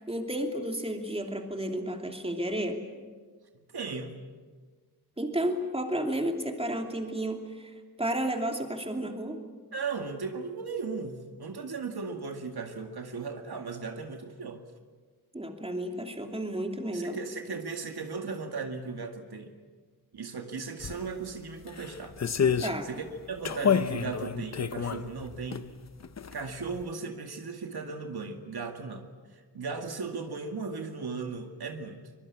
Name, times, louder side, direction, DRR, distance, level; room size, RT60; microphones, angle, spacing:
voice 1, 0.0-2.9 5.2-9.4 15.3-17.2 22.6-22.9, right 1 dB, 15° right, 3 dB, 2.8 m, -32 dB
voice 2, 3.7-4.2 9.7-14.6 16.9-19.5 20.1-22.6 22.8-25.8 26.3-32.0, right 4 dB, 75° right, 4 dB, 2.2 m, -37 dB
sound 1, 20.8-21.0 21.7-22.8 23.4-25.6 26.0-26.5 26.8-26.9, left 7 dB, 45° left, 0.8 m, -29 dB
24.0 x 22.5 x 8.6 m, 1.5 s
wide cardioid pair, 110°, 39 cm